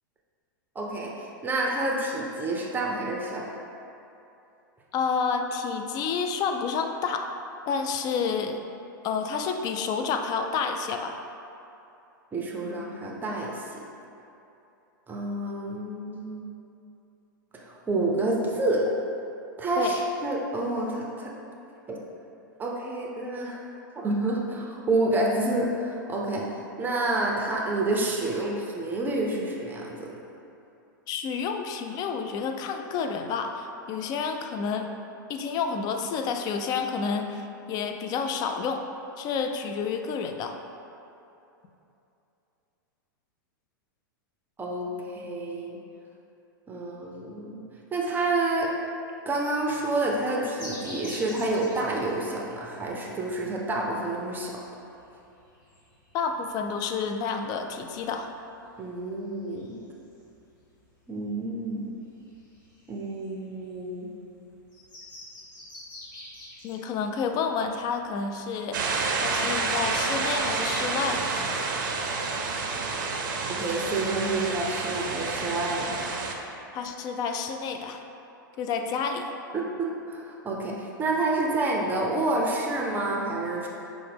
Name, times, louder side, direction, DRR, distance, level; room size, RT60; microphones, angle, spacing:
voice 1, 0.7-3.5 12.3-13.8 15.1-16.5 17.5-18.9 19.6-21.3 21.9-22.0 22.6-23.6 24.0-26.5 26.8-30.1 44.6-45.8 46.7-47.6 47.9-48.7 49.3-54.5 58.8-59.8 61.1-61.9 62.9-64.1 73.6-76.0 79.5-83.7, right 2 dB, 15° right, -2 dB, 0.5 m, -28 dB
voice 2, 4.9-7.3 7.7-8.6 9.0-11.2 19.8-20.0 31.1-34.9 35.3-38.8 39.2-40.6 56.1-58.3 66.6-68.8 69.2-71.7 76.7-78.0 78.6-79.2, left 5 dB, 35° left, 5 dB, 0.3 m, -29 dB
sound 1, 50.6-68.4, left 1 dB, 60° left, 1.5 m, -48 dB
sound 2, 68.7-76.3, right 4 dB, 65° right, 0.5 m, -29 dB
5.5 x 2.1 x 3.4 m, 2.8 s
hypercardioid pair, 115°, 11 cm